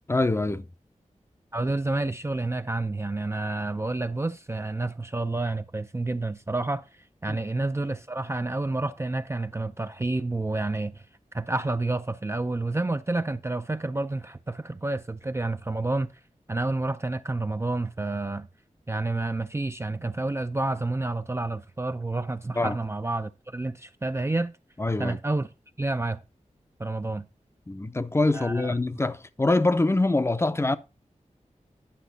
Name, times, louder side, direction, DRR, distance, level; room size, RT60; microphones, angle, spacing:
voice 1, 0.1-0.7 7.3-7.4 22.6-22.8 24.8-25.2 27.7-30.8, left 2 dB, 20° left, 0.6 m, -24 dB
voice 2, 1.5-6.8 7.2-11.0 11.3-16.1 16.5-18.5 18.9-24.5 25.0-25.5 25.8-26.2 26.8-27.2 28.3-28.7, right 2 dB, 20° right, 0.4 m, -29 dB
10.0 x 5.9 x 4.0 m
wide cardioid pair, 90°, 13 cm